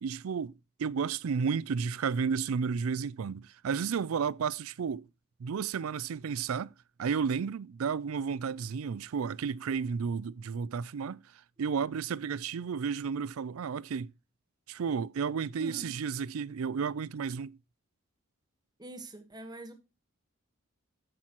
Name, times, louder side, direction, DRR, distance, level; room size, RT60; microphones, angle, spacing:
voice 1, 0.0-0.5 0.8-5.0 5.4-6.7 7.0-11.2 11.6-14.1 14.7-17.6, right 6 dB, 80° right, 0.4 m, -32 dB
voice 2, 15.6-15.9 18.8-19.7, right 2 dB, 20° right, 1.3 m, -43 dB
10.0 x 8.7 x 3.0 m
head